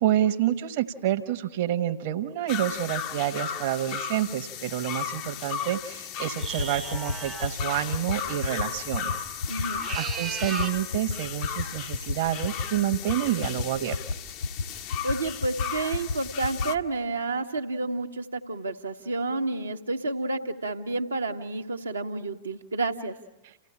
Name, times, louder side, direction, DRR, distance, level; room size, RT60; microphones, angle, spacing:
voice 1, 0.0-9.2 9.5-14.0, right 11 dB, 50° right, 6 dB, 1.2 m, -28 dB
sound 1, 2.5-16.8, left 8 dB, 45° left, 0.8 m, -36 dB
sound 2, 6.3-7.6 9.6-10.8, right 7 dB, 25° right, 0.8 m, -36 dB
sound 3, 6.4-6.6 6.9-7.1 7.4-7.6 7.9-8.1 8.4-8.6 8.9-9.1 9.4-9.6 9.9-10.1 10.4-10.6 10.9-11.1 11.4-11.6 11.9-12.1 12.4-12.6 12.9-13.1 13.4-13.6 13.9-14.1 14.4-14.6 14.9-15.1 15.4-15.6 15.9-16.1 16.4-16.6, left 4 dB, 80° left, 3.0 m, -29 dB
voice 2, 9.5-9.8 15.0-23.2, right 3 dB, 75° right, 4 dB, 1.2 m, -30 dB
29.0 x 16.0 x 8.8 m, 1.1 s
figure-of-eight pair, 90°, 0 cm